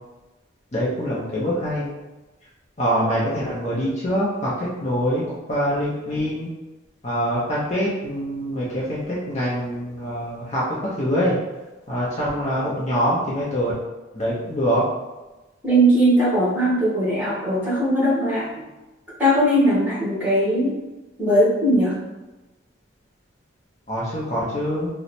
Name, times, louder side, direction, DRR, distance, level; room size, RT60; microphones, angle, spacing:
voice 1, 0.7-1.9 2.8-5.2 5.5-6.5 7.0-10.6 11.0-11.4 11.9-13.7 14.1-14.8 23.9-24.9, equal, 35° left, -7 dB, 0.6 m, -24 dB
voice 2, 15.6-18.6 19.2-20.7 21.2-21.9, right 1 dB, 10° right, -8 dB, 1.1 m, -19 dB
3.0 x 2.1 x 4.1 m, 1.1 s
head